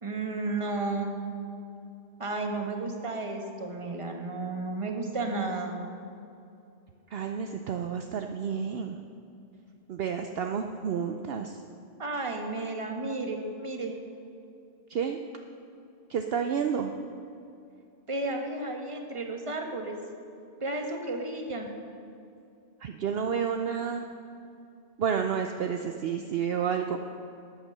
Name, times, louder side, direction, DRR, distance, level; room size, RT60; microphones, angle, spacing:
voice 1, 0.0-1.2 2.2-5.8 12.0-13.9 18.1-20.0 20.6-21.7, right 2 dB, 30° right, 3 dB, 1.3 m, -33 dB
voice 2, 7.1-9.0 9.9-11.6 14.9-15.2 16.1-16.9 22.8-24.1 25.0-27.0, right 7 dB, 65° right, 5 dB, 0.8 m, -30 dB
12.5 x 9.0 x 6.6 m, 2.6 s
omnidirectional pair, 1.2 m